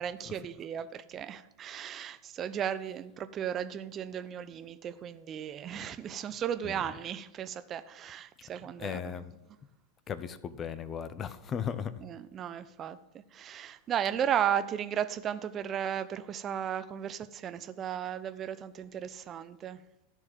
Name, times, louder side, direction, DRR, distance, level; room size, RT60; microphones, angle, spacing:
voice 1, 0.0-9.0 12.0-13.0 13.3-19.8, right 9 dB, 30° right, 0.6 m, -35 dB
voice 2, 8.8-9.3 10.1-12.0, left 8 dB, 25° left, 0.7 m, -36 dB
13.0 x 4.6 x 7.5 m
figure-of-eight pair, 90°, 0 cm